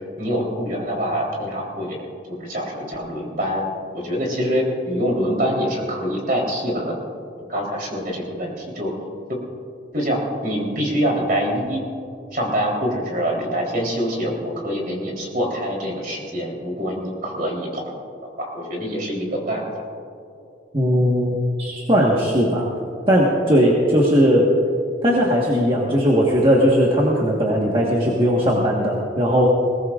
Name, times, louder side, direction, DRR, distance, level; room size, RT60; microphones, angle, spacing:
voice 1, 0.2-2.0 2.3-3.6 3.9-6.9 7.5-8.9 9.3-9.4 9.9-11.8 12.3-17.8 18.4-19.6, equal, 50° right, -1 dB, 3.6 m, -25 dB
voice 2, 20.7-22.7 23.1-24.5 25.0-29.5, equal, 30° right, -4 dB, 1.4 m, -18 dB
21.0 x 18.0 x 2.5 m, 2.4 s
head